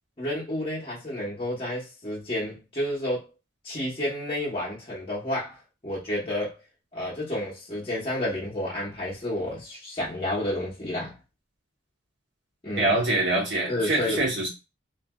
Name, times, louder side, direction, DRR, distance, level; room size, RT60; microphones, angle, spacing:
voice 1, 0.2-3.2 3.6-5.6 5.8-6.5 6.9-11.1 12.6-12.9 13.7-14.3, left 1 dB, 25° left, 0.9 m, -30 dB
voice 2, 12.8-14.5, right 2 dB, 65° right, 1.2 m, -24 dB
3.2 x 2.7 x 2.3 m
head